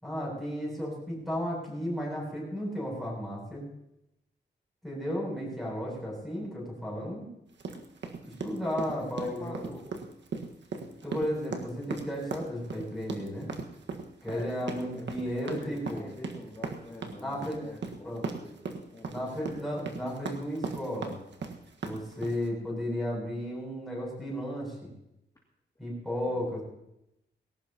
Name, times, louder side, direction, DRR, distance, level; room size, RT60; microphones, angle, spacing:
voice 1, 0.0-3.7 4.8-7.3 8.2-9.6 11.0-13.5 14.2-16.0 17.2-17.6 18.0-18.2 19.1-21.2 21.8-24.9 25.8-26.6, equal, ahead, -4 dB, 7.9 m, -34 dB
sound 1, 7.6-22.5, right 4 dB, 75° right, 1.6 m, -38 dB
voice 2, 9.2-10.0 14.3-18.6 18.9-19.6 26.3-26.5, left 1 dB, 20° left, -3 dB, 2.5 m, -45 dB
19.5 x 17.5 x 3.0 m, 0.83 s
wide cardioid pair, 150°, 19 cm